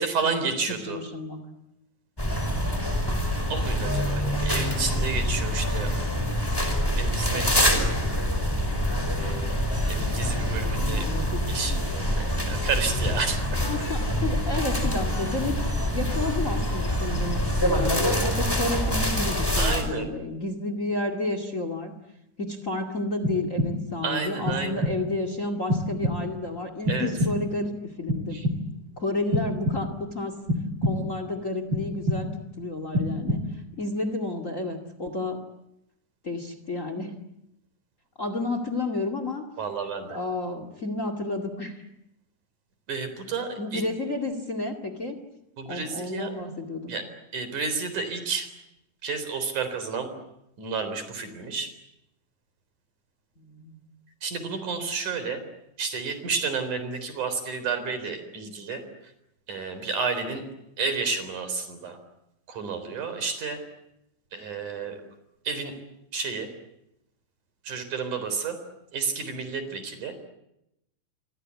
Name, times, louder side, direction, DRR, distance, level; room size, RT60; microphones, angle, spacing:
voice 1, 0.0-1.0 3.5-5.9 7.0-7.9 9.1-9.6 9.9-11.1 11.5-13.4 19.6-20.1 24.0-24.9 26.9-27.1 28.3-28.5 39.6-40.2 42.9-43.8 45.6-46.3 46.9-47.1 47.3-48.5 49.0-50.1 50.6-51.7 54.2-55.4 55.8-58.8 59.5-60.4 60.8-62.0 62.5-63.6 64.3-65.0 65.5-65.7 66.1-66.5 67.7-68.6 68.9-70.2, right 5 dB, 75° right, 10 dB, 5.4 m, -31 dB
voice 2, 0.9-1.4 10.9-11.5 13.6-15.6 15.9-21.9 22.4-28.4 29.0-30.4 30.8-33.4 33.8-35.4 36.2-37.2 38.2-39.4 40.1-41.9 43.6-45.2 45.6-46.9 53.4-53.8, left 2 dB, 25° left, 10 dB, 2.2 m, -31 dB
sound 1, 2.2-19.8, equal, 5° left, 4.9 m, -26 dB
sound 2, 23.2-24.0 24.5-25.2 25.7-26.5 26.9-27.7 28.1-28.9 29.3-30.1 30.5-31.3 31.7-32.5 32.9-33.7, left 1 dB, 40° right, 2.7 m, -28 dB
28.0 x 25.0 x 8.4 m, 0.85 s
omnidirectional pair, 3.6 m